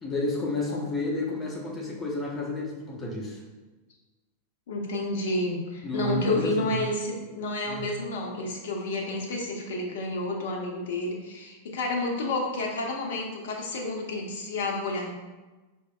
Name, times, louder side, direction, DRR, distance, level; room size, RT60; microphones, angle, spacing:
voice 1, 0.0-3.4 5.8-6.8 7.7-7.9, left 2 dB, 15° left, -3 dB, 0.8 m, -31 dB
voice 2, 4.7-15.1, left 2 dB, 60° left, 1 dB, 0.6 m, -30 dB
4.6 x 2.8 x 2.3 m, 1.2 s
figure-of-eight pair, 90°, 0 cm